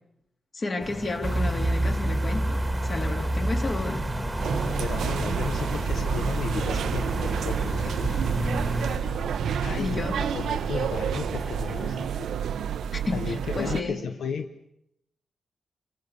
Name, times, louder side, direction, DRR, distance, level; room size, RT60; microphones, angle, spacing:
voice 1, 0.5-4.0 9.8-10.3 12.9-14.0, left 3 dB, 30° left, 4 dB, 3.2 m, -32 dB
sound 1, 0.8-12.1, left 1 dB, 15° left, 4.1 m, -38 dB
sound 2, 1.2-9.0, right 1 dB, 15° right, 1.9 m, -29 dB
sound 3, 4.4-13.8, right 8 dB, 80° right, 0.9 m, -30 dB
voice 2, 4.8-8.1 9.6-12.3 13.1-14.7, left 6 dB, 60° left, 8 dB, 1.1 m, -34 dB
29.0 x 26.0 x 6.8 m, 0.79 s
wide cardioid pair, 165°, 0 cm